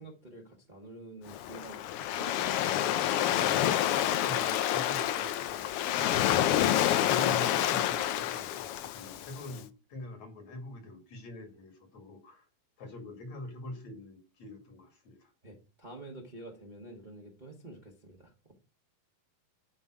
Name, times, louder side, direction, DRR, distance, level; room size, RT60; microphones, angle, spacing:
voice 1, 0.0-1.8 2.1-4.0 15.4-18.5, right 2 dB, 25° right, 1.1 m, -48 dB
Waves surf, 1.3-9.5, left 12 dB, 80° left, 1.3 m, -28 dB
voice 2, 4.3-6.2 7.0-12.5 12.8-15.3, left 1 dB, 65° left, 3.4 m, -44 dB
11.0 x 5.3 x 6.1 m
omnidirectional pair, 3.4 m